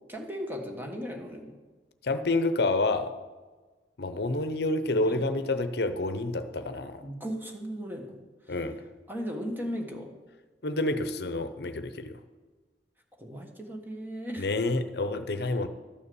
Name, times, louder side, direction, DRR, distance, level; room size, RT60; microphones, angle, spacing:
voice 1, 0.1-1.5 5.0-5.2 7.0-8.2 8.4-8.6 9.1-10.1 13.2-14.5, equal, 10° right, 2 dB, 1.4 m, -36 dB
voice 2, 2.0-3.1 4.0-7.0 8.5-8.8 10.6-12.2 14.4-15.7, left 2 dB, 60° left, 10 dB, 0.8 m, -28 dB
12.5 x 7.0 x 7.0 m, 1.3 s
head